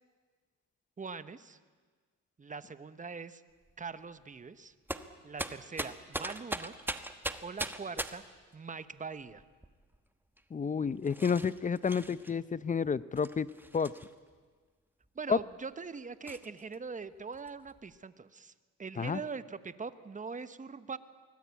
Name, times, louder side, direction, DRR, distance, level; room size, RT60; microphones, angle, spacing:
voice 1, 1.0-1.6 2.4-3.4 3.8-4.7 5.2-6.7 7.4-8.2 8.5-9.4 15.1-18.5 18.8-21.0, right 5 dB, 25° right, 13 dB, 1.1 m, -42 dB
sound 1, 3.7-3.9 4.9-8.4 9.2-10.0 10.4-10.5 11.0-12.3 13.2-14.3 15.0-15.1 15.5-15.6 16.3-16.8 17.1-18.0, right 1 dB, 5° right, 1.2 m, -40 dB
voice 2, 10.5-13.9 15.3-15.4 19.0-19.2, left 6 dB, 25° left, 17 dB, 0.7 m, -30 dB
24.5 x 19.5 x 8.4 m, 1.5 s
cardioid pair, 90°, 30 cm